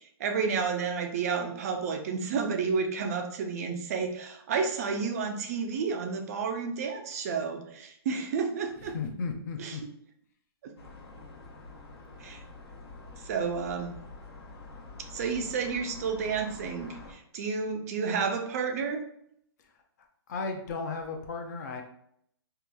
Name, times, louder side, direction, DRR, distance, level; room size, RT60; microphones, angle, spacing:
voice 1, 0.0-8.9 9.6-9.8 10.6-10.7 12.2-12.4 13.2-13.9 15.1-19.0, right 5 dB, 35° right, 4 dB, 0.3 m, -31 dB
voice 2, 8.8-9.8 20.3-21.8, left 4 dB, 40° left, 4 dB, 0.4 m, -35 dB
sound 1, 10.8-17.1, left 3 dB, 70° left, 0.9 m, -47 dB
2.8 x 2.3 x 2.2 m, 0.69 s
hypercardioid pair, 150°, 14 cm